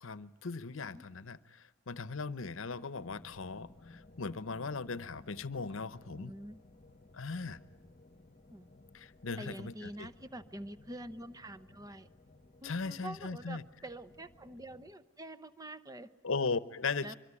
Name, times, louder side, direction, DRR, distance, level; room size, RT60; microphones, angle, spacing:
voice 1, 0.0-1.4 1.9-3.7 4.2-6.3 7.2-7.6 9.2-9.7 12.6-13.6 16.2-17.2, left 4 dB, 75° left, 0.9 m, -37 dB
voice 2, 0.9-1.3 6.0-6.6 8.5-8.7 9.4-12.1 12.6-16.1 17.0-17.2, right 1 dB, 20° right, 0.8 m, -46 dB
sound 1, 3.0-14.9, left 2 dB, 35° left, 1.1 m, -58 dB
24.0 x 23.5 x 9.8 m
head